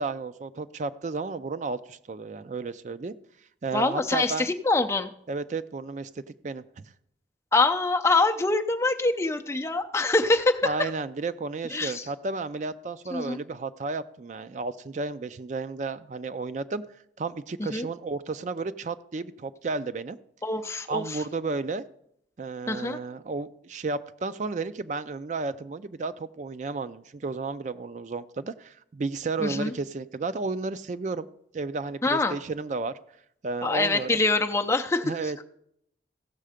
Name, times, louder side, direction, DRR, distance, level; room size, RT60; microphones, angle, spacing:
voice 1, 0.0-3.1 3.6-4.5 5.3-6.1 6.4-6.9 10.6-16.8 17.2-20.2 20.9-21.8 22.4-31.3 31.5-32.9 33.4-34.1 35.0-35.4, right 3 dB, 40° right, 13 dB, 0.4 m, -32 dB
voice 2, 3.7-5.1 7.5-10.9 11.7-12.1 13.1-13.4 17.6-17.9 20.4-21.2 22.7-23.0 29.4-29.7 32.0-32.4 33.6-35.2, left 3 dB, 15° left, 5 dB, 0.6 m, -25 dB
15.5 x 6.5 x 5.0 m, 0.73 s
head